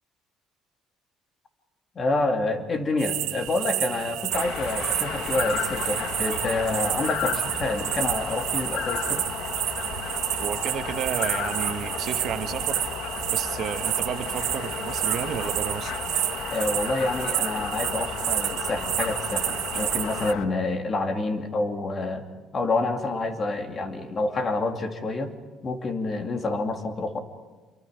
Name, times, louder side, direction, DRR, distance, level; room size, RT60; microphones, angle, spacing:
voice 1, 1.9-9.3 16.5-22.3 22.5-25.3 25.6-27.2, left 2 dB, 35° left, 5 dB, 2.6 m, -28 dB
sound 1, 3.0-20.3, right 15 dB, 80° right, 0.6 m, -30 dB
sound 2, 4.3-20.5, left 7 dB, 70° left, 1.5 m, -33 dB
voice 2, 10.4-12.8 13.3-16.0, right 9 dB, 60° right, 8 dB, 1.3 m, -32 dB
26.5 x 23.5 x 5.2 m, 1.3 s
cardioid pair, 105°, 0 cm